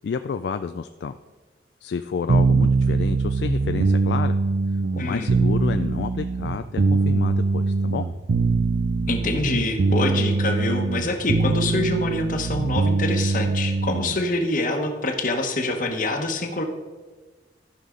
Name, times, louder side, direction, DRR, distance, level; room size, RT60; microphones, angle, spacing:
voice 1, 0.0-1.2 1.8-4.4 4.9-8.0, left 5 dB, 65° left, 9 dB, 0.3 m, -30 dB
sound 1, 2.3-14.2, right 3 dB, 70° right, 0.5 m, -22 dB
voice 2, 5.0-5.3 9.1-16.6, left 2 dB, 45° left, 5 dB, 1.1 m, -25 dB
14.5 x 5.7 x 3.8 m, 1.3 s
head